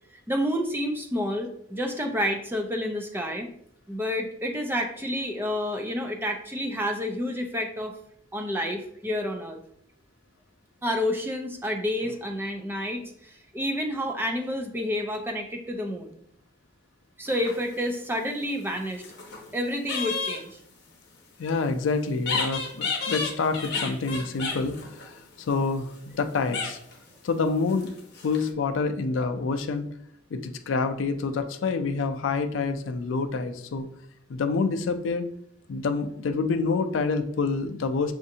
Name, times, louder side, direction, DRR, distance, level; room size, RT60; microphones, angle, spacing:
voice 1, 0.3-3.5 3.9-7.9 8.3-9.6 10.8-16.2 17.2-19.0 19.5-20.6, equal, 10° right, 4 dB, 0.4 m, -29 dB
sound 1, 17.3-18.0 18.7-19.5 19.9-20.4 22.2-26.2 26.5-27.0 27.7-28.5, left 4 dB, 55° left, 0.8 m, -32 dB
voice 2, 21.4-24.8 25.1-26.8 27.2-27.9 28.2-29.9 30.3-33.9 34.3-35.3 35.7-38.1, left 4 dB, 75° left, 8 dB, 0.4 m, -27 dB
6.1 x 2.5 x 2.7 m, 0.68 s
head